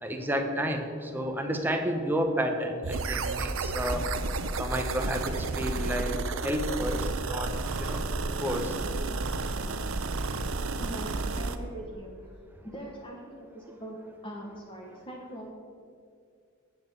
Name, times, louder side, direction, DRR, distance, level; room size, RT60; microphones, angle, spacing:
voice 1, 0.0-4.0 4.6-6.1 6.4-7.0 7.3-7.5 7.8-8.0 8.4-8.7, equal, 10° right, 4 dB, 0.9 m, -30 dB
sound 1, 2.8-11.6, right 3 dB, 75° right, 0.6 m, -31 dB
voice 2, 10.8-12.1 12.6-15.5, right 1 dB, 25° left, -1 dB, 1.2 m, -42 dB
7.8 x 7.5 x 7.7 m, 2.3 s
head